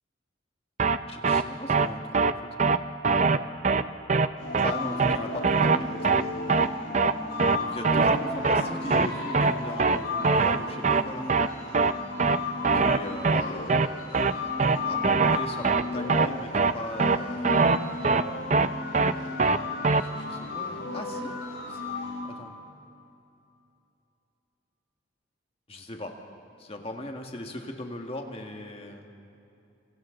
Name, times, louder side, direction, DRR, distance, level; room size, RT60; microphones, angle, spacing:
sound 1, 0.8-1.0 1.2-1.4 1.7-1.9 2.1-2.3 2.6-2.8 3.0-3.4 3.6-3.8 4.1-4.3 4.5-4.7 5.0-5.2 5.4-5.8 6.0-6.2 6.5-6.7 6.9-7.1 7.4-7.6 7.8-8.2 8.4-8.6 8.9-9.1 9.3-9.5 9.8-10.0 10.2-10.6 10.8-11.0 11.3-11.5 11.7-11.9 12.2-12.4 12.6-13.0 13.2-13.4 13.7-13.9 14.1-14.3 14.6-14.8 15.0-15.4 15.6-15.8 16.1-16.3 16.5-16.7 17.0-17.2 17.4-17.8 18.0-18.2 18.5-18.7 18.9-19.1 19.4-19.6 19.8-20.0, right 4 dB, 40° right, 0.6 m, -22 dB
voice 1, 1.1-2.5 4.6-6.2 7.6-11.3 12.7-13.7 14.8-17.6 20.0-21.3 21.7-21.8 22.2-22.6 25.7-26.2 26.6-29.1, left 1 dB, 30° left, 3 dB, 1.8 m, -38 dB
sound 2, 4.4-22.2, left 3 dB, 85° left, 5.6 m, -35 dB
28.0 x 27.5 x 3.9 m, 2.8 s
head